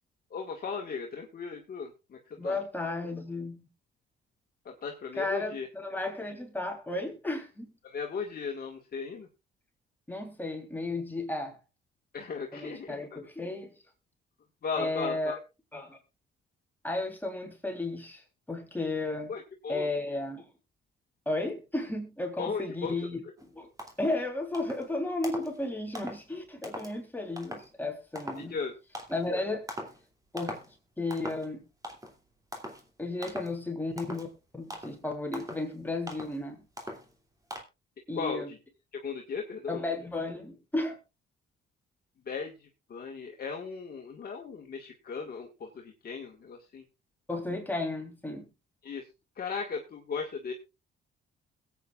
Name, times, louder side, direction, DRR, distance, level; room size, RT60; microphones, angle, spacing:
voice 1, 0.3-2.6 4.7-5.7 7.8-9.3 12.1-12.9 14.6-15.4 19.3-19.9 22.4-22.9 28.5-28.7 38.2-38.4 38.9-39.8 42.3-42.5 42.9-46.8 48.8-49.0 49.4-50.5, left 5 dB, 50° left, 1.7 m, -36 dB
voice 2, 2.4-3.7 5.1-7.7 10.1-11.6 12.5-13.7 14.8-15.4 15.7-16.0 16.8-18.2 18.5-19.3 19.7-20.5 21.2-23.2 23.5-23.7 24.0-28.6 29.1-29.7 30.3-30.7 31.0-31.6 33.0-34.3 34.5-36.6 38.1-38.5 39.7-41.0 47.3-48.5, left 2 dB, 10° left, 3.3 m, -33 dB
sound 1, 23.4-23.5 23.8-24.2 24.5-24.9 25.2-25.6 25.9-26.2 26.6-26.9 27.4-27.7 28.1-28.5 28.9-29.3 29.7-30.0 30.4-30.7 31.1-31.5 31.8-32.2 32.5-32.8 33.2-33.5 34.0-34.3 34.7-35.0 35.3-35.7 36.1-36.4 36.8-37.1 37.5-37.6, equal, 15° right, 2.7 m, -41 dB
22.0 x 8.6 x 2.4 m
cardioid pair, 90°, 20 cm